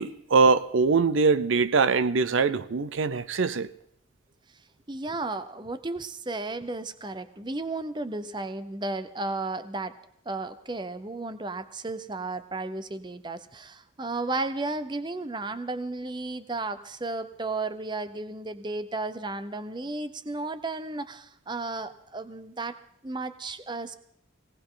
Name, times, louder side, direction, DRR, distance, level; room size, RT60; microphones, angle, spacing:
voice 1, 0.0-3.7, right 4 dB, 75° right, 0.6 m, -22 dB
voice 2, 4.9-10.0 10.3-22.8 23.0-23.9, right 2 dB, 20° right, 0.7 m, -34 dB
19.5 x 18.0 x 3.9 m
head